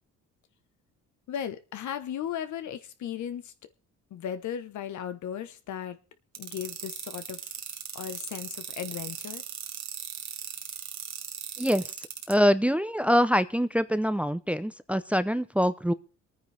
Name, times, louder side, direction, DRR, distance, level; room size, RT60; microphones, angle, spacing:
voice 1, 1.3-3.5 4.1-6.0 6.4-7.4 7.9-9.4, left 9 dB, 70° left, 11 dB, 1.3 m, -36 dB
sound 1, 6.3-12.3, right 8 dB, 65° right, 1.8 m, -37 dB
voice 2, 12.3-15.9, equal, 5° right, 13 dB, 0.6 m, -24 dB
23.5 x 9.5 x 3.4 m, 0.35 s
cardioid pair, 90°, 30 cm